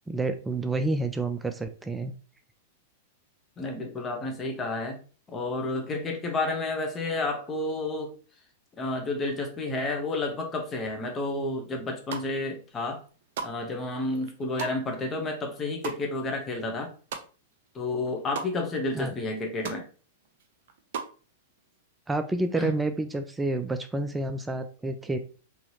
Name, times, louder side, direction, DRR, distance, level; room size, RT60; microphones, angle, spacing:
voice 1, 0.1-2.1 18.9-19.1 22.1-25.2, right 2 dB, 10° right, 8 dB, 0.3 m, -29 dB
voice 2, 3.6-5.0 5.3-8.1 8.8-13.0 13.4-16.9 17.7-19.8 22.6-22.7, left 2 dB, 20° left, 2 dB, 0.9 m, -30 dB
sound 1, 11.9-12.5 12.9-17.7 17.9-18.5 18.9-19.0 19.2-19.8 20.2-21.2, right 6 dB, 55° right, 0.6 m, -38 dB
3.9 x 2.9 x 2.9 m, 0.38 s
figure-of-eight pair, 95°, 0 cm